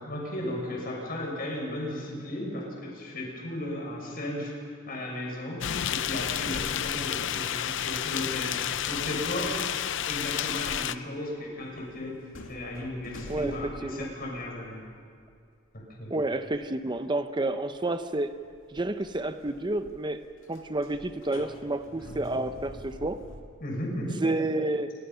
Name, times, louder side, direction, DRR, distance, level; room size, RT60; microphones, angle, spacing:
voice 1, 0.0-9.8 10.0-12.2 12.5-14.8 15.7-16.1 23.6-24.2, left 1 dB, 50° left, -1 dB, 6.5 m, -35 dB
sound 1, 5.6-11.0, left 10 dB, 65° left, 0.6 m, -30 dB
sound 2, 11.6-15.4 15.7-16.8 17.0-17.1 17.7-23.4, left 1 dB, 85° left, 2.5 m, -46 dB
voice 2, 16.1-18.3 18.7-23.2 24.2-24.9, right 2 dB, 25° right, 9 dB, 0.8 m, -30 dB
28.5 x 22.0 x 5.7 m, 2.3 s
head